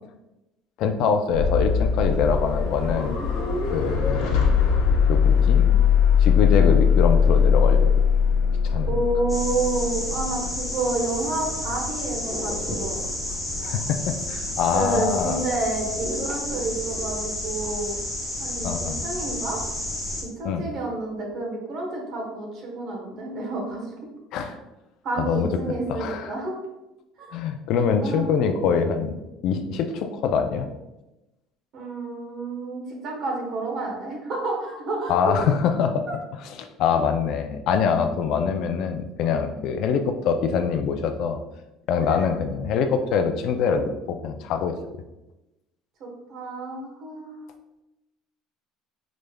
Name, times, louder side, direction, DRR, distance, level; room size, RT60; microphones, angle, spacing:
voice 1, 0.8-3.2 3.7-4.5 5.1-5.7 6.2-7.9 8.6-9.0 13.6-14.0 14.3-15.4 18.6-19.0 20.4-20.7 24.3-24.6 25.2-25.5 25.9-26.3 27.3-30.7 35.1-36.1 36.6-41.4 41.9-44.8, left 6 dB, 55° left, 7 dB, 0.3 m, -24 dB
sound 1, 1.3-17.2, left 6 dB, 80° left, 0.7 m, -22 dB
voice 2, 8.9-13.1 14.7-18.0 18.4-19.6 20.2-23.9 25.0-26.6 27.2-27.3 28.0-28.5 31.7-35.4 36.1-36.2 42.0-42.3 46.0-47.5, right 2 dB, 45° right, 0 dB, 1.0 m, -30 dB
sound 2, 9.3-20.2, left 1 dB, 5° left, 0.8 m, -31 dB
4.9 x 3.2 x 2.2 m, 0.98 s
cardioid pair, 160°, 0 cm